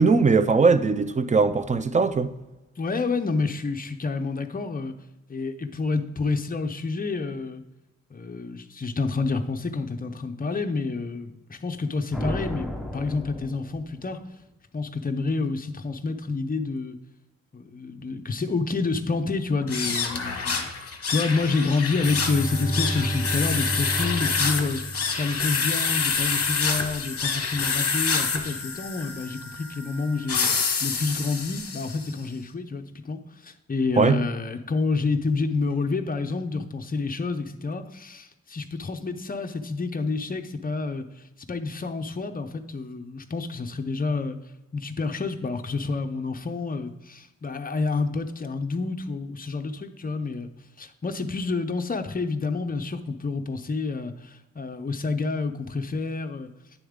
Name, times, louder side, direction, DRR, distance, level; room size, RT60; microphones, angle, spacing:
voice 1, 0.0-2.3 34.0-34.2, right 4 dB, 25° right, 0.4 m, -20 dB
voice 2, 2.8-5.0 5.3-7.6 8.1-14.2 14.7-17.0 17.5-30.5 30.8-41.1 41.5-44.4 44.7-50.5 50.8-56.5, left 4 dB, 30° left, 0.6 m, -28 dB
sound 1, 12.1-14.2, left 1 dB, ahead, 0.8 m, -34 dB
sound 2, 19.6-32.1, left 5 dB, 50° left, 0.9 m, -27 dB
Bowed string instrument, 21.9-25.6, right 1 dB, 70° right, 1.9 m, -32 dB
9.4 x 7.0 x 3.6 m
wide cardioid pair, 160°, 29 cm